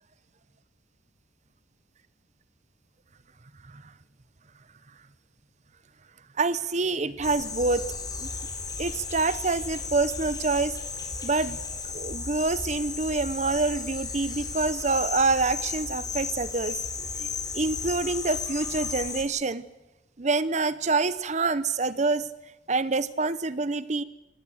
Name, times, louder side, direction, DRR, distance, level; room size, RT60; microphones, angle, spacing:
voice 1, 6.4-7.8 8.2-8.3 8.8-10.8 11.2-11.6 11.9-16.8 17.2-19.6 20.2-22.3 22.7-24.0, right 3 dB, 40° right, 16 dB, 0.8 m, -26 dB
sound 1, 7.2-19.2, left 4 dB, 20° left, 3.4 m, -34 dB
25.5 x 19.0 x 7.8 m, 0.99 s
head